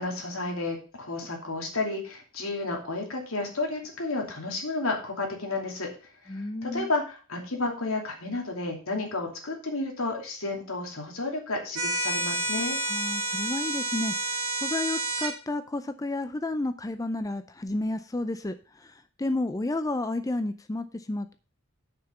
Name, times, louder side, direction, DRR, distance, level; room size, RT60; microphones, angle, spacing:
voice 1, 0.0-5.9 6.2-12.8, left 2 dB, 80° left, 1 dB, 2.7 m, -32 dB
voice 2, 6.3-6.9 12.9-14.1 14.6-18.5 19.2-21.3, left 2 dB, 15° left, 10 dB, 0.4 m, -31 dB
sound 1, 11.8-15.3, right 2 dB, 85° right, 1.9 m, -29 dB
6.7 x 5.8 x 6.8 m, 0.37 s
head